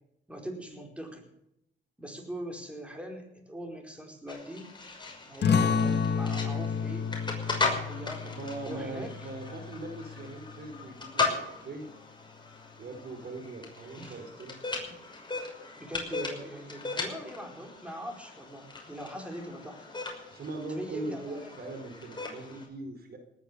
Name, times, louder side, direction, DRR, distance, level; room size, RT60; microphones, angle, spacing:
voice 1, 0.3-1.2 2.0-4.7 5.3-7.1 7.8-8.3 8.6-9.3 14.0-14.2 14.9-15.0 15.8-19.9 20.7-21.5, right 1 dB, 5° right, 2 dB, 4.7 m, -41 dB
sound 1, 4.3-22.6, left 3 dB, 25° left, 6.0 m, -38 dB
sound 2, 5.4-10.6, left 6 dB, 60° left, 1.6 m, -30 dB
voice 2, 8.2-11.9 12.8-14.6 20.3-23.2, right 2 dB, 50° right, 6 dB, 4.7 m, -40 dB
19.0 x 10.5 x 6.9 m, 0.78 s
cardioid pair, 90°, 20 cm